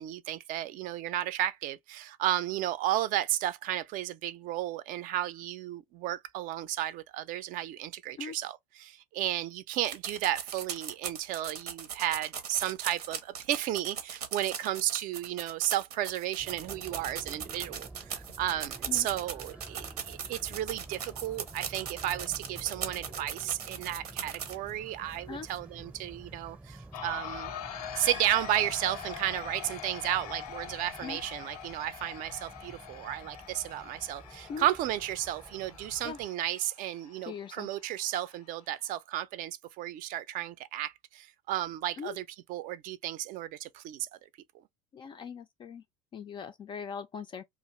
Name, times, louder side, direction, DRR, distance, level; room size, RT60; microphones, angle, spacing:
voice 1, 0.0-27.5 28.0-44.1, right 13 dB, 45° right, 0.5 m, -33 dB
sound 1, 9.8-24.7 25.1-25.2 25.5-25.6, right 7 dB, 85° right, 0.7 m, -39 dB
sound 2, 16.4-36.3, right 2 dB, 5° right, 0.7 m, -50 dB
sound 3, 26.9-38.9, left 9 dB, 75° left, 0.6 m, -44 dB
voice 2, 37.2-37.7 42.0-42.2 44.9-45.8 46.1-47.4, left 6 dB, 25° left, 0.3 m, -40 dB
2.5 x 2.4 x 2.9 m
hypercardioid pair, 85°, 19 cm